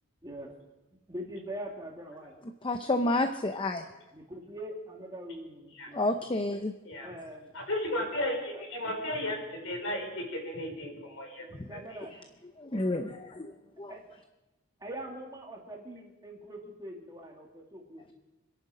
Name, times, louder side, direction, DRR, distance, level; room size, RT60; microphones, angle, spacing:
voice 1, 0.2-0.5 1.1-2.4 2.8-3.2 4.1-6.3 7.0-7.6 8.5-8.9 11.7-12.2 13.9-14.0 14.8-18.1, right 1 dB, 15° right, 0 dB, 2.4 m, -43 dB
voice 2, 2.6-3.8 5.9-6.7 12.8-13.0 13.8-13.9, left 2 dB, 25° left, 7 dB, 0.6 m, -28 dB
voice 3, 7.5-11.4 11.7-11.8, left 1 dB, 60° left, 1 dB, 5.1 m, -34 dB
26.5 x 11.0 x 5.0 m, 1.0 s
head